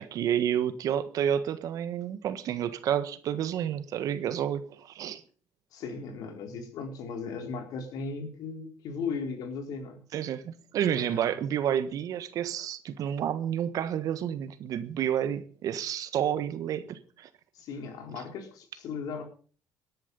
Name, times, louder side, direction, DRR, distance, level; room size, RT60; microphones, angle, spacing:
voice 1, 0.0-5.2 10.1-17.3, right 9 dB, 60° right, 1.5 m, -30 dB
voice 2, 5.7-10.0 11.0-11.4 17.5-19.2, left 5 dB, 70° left, 4.1 m, -37 dB
18.0 x 10.5 x 5.5 m
supercardioid pair, 75°, 7 cm